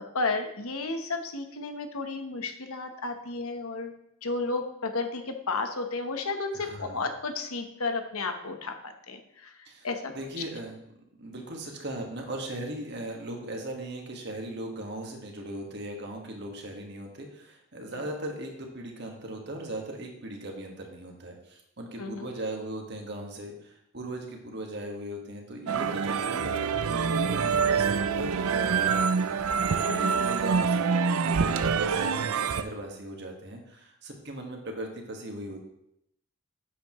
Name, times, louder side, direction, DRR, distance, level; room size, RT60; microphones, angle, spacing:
voice 1, 0.0-3.9 4.2-10.1 22.0-22.3 29.9-30.3, left 3 dB, 85° left, 6 dB, 1.2 m, -33 dB
voice 2, 6.5-7.1 9.7-10.8 11.2-29.4 30.2-35.7, right 1 dB, 50° right, 1 dB, 1.7 m, -38 dB
sound 1, 25.7-32.6, right 5 dB, 85° right, 0.5 m, -26 dB
10.5 x 8.4 x 3.2 m, 0.76 s
head